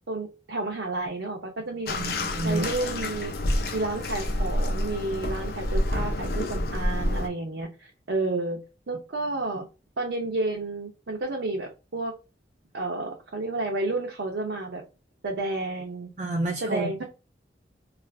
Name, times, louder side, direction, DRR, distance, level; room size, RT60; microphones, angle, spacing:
voice 1, 0.1-2.0 2.4-3.3 3.7-8.6 8.9-9.7 10.0-12.2 12.7-14.8 15.2-16.1 16.6-17.0, right 2 dB, 85° right, 0 dB, 0.7 m, -31 dB
Bathtub (filling or washing), 1.9-7.3, left 1 dB, 55° left, 0.5 m, -28 dB
voice 2, 2.0-2.7 16.2-17.0, right 2 dB, 40° right, 2 dB, 0.4 m, -29 dB
2.5 x 2.4 x 3.2 m, 0.30 s
head